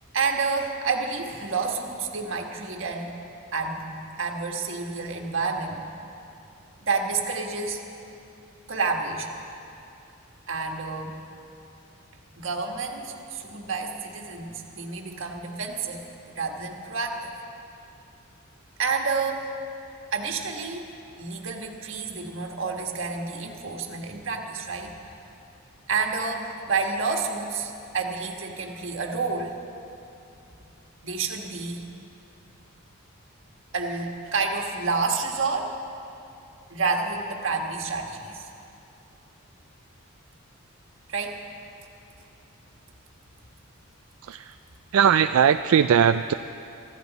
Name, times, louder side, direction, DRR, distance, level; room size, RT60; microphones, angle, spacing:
voice 1, 0.1-3.1 3.5-5.8 6.8-7.8 8.7-9.4 10.5-11.2 12.4-17.3 18.8-19.5 20.1-20.9 21.2-24.9 25.9-29.6 31.0-31.8 33.7-35.7 36.7-38.5 41.1-41.4, right 4 dB, 60° right, 2 dB, 1.6 m, -29 dB
voice 2, 44.2-44.5 44.9-46.3, right 8 dB, 85° right, 9 dB, 0.3 m, -19 dB
24.0 x 14.5 x 4.1 m, 2.7 s
head